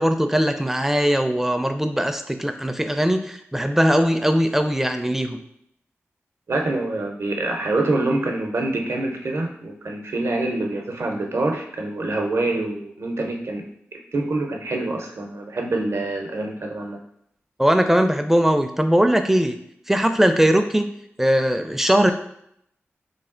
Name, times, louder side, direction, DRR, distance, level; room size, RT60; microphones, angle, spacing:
voice 1, 0.0-5.4 17.6-19.6 19.9-20.9 21.2-22.1, equal, 5° right, 7 dB, 0.4 m, -20 dB
voice 2, 6.5-13.6 13.9-17.0, right 2 dB, 65° right, 2 dB, 0.7 m, -26 dB
3.2 x 2.4 x 3.7 m, 0.72 s
cardioid pair, 55°, 5 cm